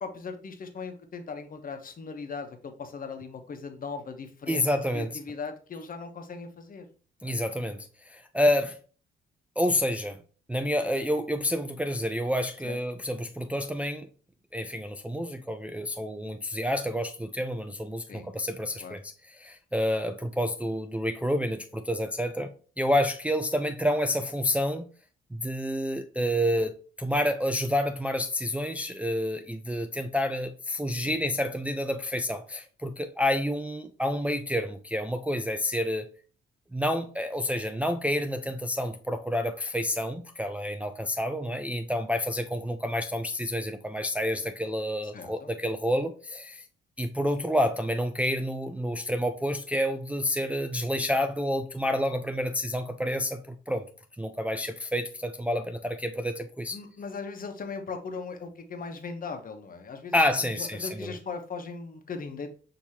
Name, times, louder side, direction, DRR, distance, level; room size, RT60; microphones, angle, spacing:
voice 1, 0.0-4.7 4.9-6.9 7.2-7.4 12.6-12.8 18.1-18.3 18.8-19.0 31.0-31.2 45.1-45.5 56.7-60.1 60.4-62.5, left 4 dB, 45° left, 1.0 m, -38 dB
voice 2, 4.5-5.1 7.2-8.8 9.6-10.2 10.5-14.1 14.5-19.1 19.4-22.5 22.8-24.9 25.3-36.1 36.7-46.6 47.0-53.8 54.2-56.8 60.1-61.1, left 1 dB, 5° right, 0.4 m, -29 dB
6.4 x 2.9 x 2.8 m
cardioid pair, 90°, 20 cm